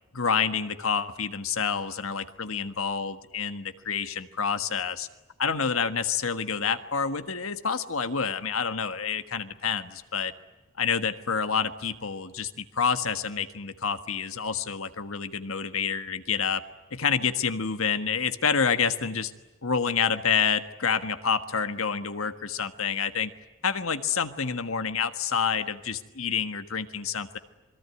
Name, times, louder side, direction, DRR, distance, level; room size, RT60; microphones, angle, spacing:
voice 1, 0.1-5.1 5.4-10.3 10.8-16.6 16.9-19.3 19.6-23.3 23.6-27.4, left 6 dB, 75° left, 10 dB, 1.5 m, -28 dB
27.0 x 22.5 x 9.7 m, 1.1 s
head